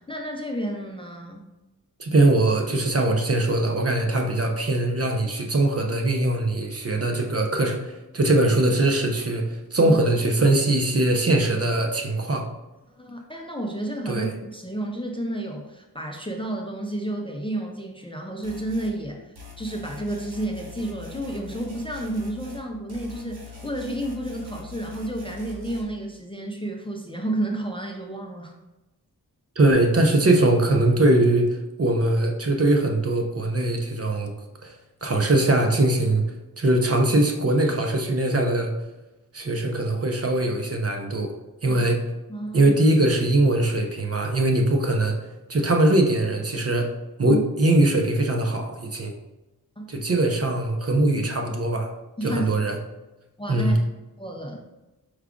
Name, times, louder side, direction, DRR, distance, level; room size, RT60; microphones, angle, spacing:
voice 1, 0.0-1.5 9.8-10.0 13.0-28.5 41.7-41.8 42.3-42.7 47.3-47.4 49.8-49.9 52.2-52.5 53.4-53.8 54.2-54.7, right 1 dB, 15° left, 1 dB, 0.4 m, -31 dB
voice 2, 2.0-12.5 14.1-14.3 29.6-34.3 34.6-36.2 36.6-38.7 39.3-41.3 41.6-42.0 42.5-45.2 45.5-46.9 47.2-49.1 49.9-51.9 52.2-52.8 53.5-53.8, right 2 dB, 40° right, 3 dB, 0.6 m, -21 dB
sound 1, 18.4-19.0 19.4-22.6 22.9-25.8, left 5 dB, 80° right, 0.9 m, -42 dB
4.7 x 2.3 x 3.6 m, 1.0 s
wide cardioid pair, 65°, 38 cm